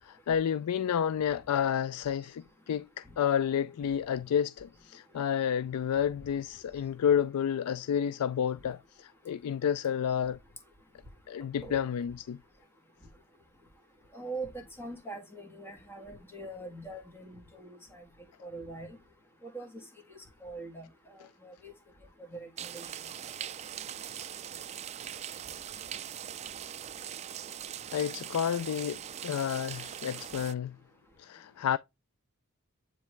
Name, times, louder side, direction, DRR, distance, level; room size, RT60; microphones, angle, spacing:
voice 1, 0.0-10.4 11.3-12.4 27.9-30.8 31.2-31.8, left 8 dB, 85° left, 0.3 m, -30 dB
voice 2, 14.1-18.0 18.4-18.9 19.4-19.9 20.4-20.9 21.2-21.7 22.3-22.9, right 2 dB, 10° left, 1.6 m, -42 dB
sound 1, 22.6-30.5, right 9 dB, 30° right, 0.3 m, -41 dB
9.5 x 3.3 x 3.2 m
head